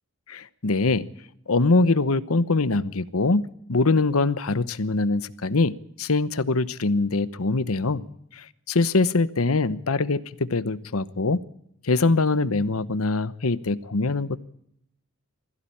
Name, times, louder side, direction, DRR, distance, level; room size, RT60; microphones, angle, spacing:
voice 1, 0.3-1.1 1.5-8.1 8.3-11.4 11.8-14.4, left 3 dB, 85° left, 15 dB, 1.0 m, -23 dB
21.0 x 15.5 x 8.6 m, 0.75 s
head